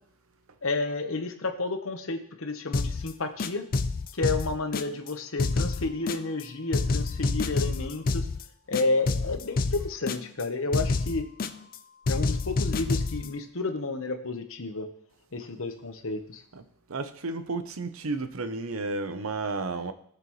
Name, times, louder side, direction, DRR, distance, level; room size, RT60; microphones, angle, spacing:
voice 1, 0.6-3.7 4.1-8.3 8.7-11.2 12.1-14.9 15.3-16.4, left 3 dB, 65° left, 1.1 m, -31 dB
sound 1, 2.7-3.1 3.4-5.1 5.4-6.4 6.7-8.4 8.7-10.4 10.7-11.8 12.1-13.3, left 3 dB, 40° left, 0.5 m, -28 dB
voice 2, 16.9-19.9, right 3 dB, 70° right, 0.8 m, -32 dB
17.5 x 6.8 x 3.1 m
head